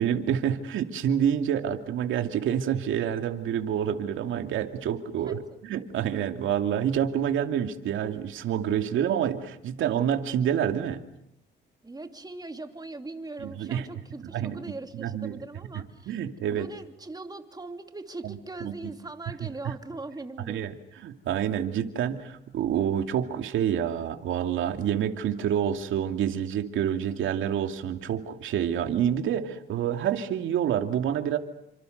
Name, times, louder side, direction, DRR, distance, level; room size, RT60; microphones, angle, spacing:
voice 1, 0.0-11.0 13.4-13.9 14.3-14.6 14.9-15.3 16.1-16.7 18.2-18.3 18.6-18.7 19.6-19.7 20.5-20.7 21.0-31.4, right 9 dB, 80° right, 6 dB, 2.7 m, -27 dB
voice 2, 5.2-5.6 11.8-16.2 16.5-20.7, right 2 dB, 20° right, 6 dB, 2.9 m, -40 dB
29.5 x 26.0 x 6.7 m, 0.79 s
cardioid pair, 90°, 20 cm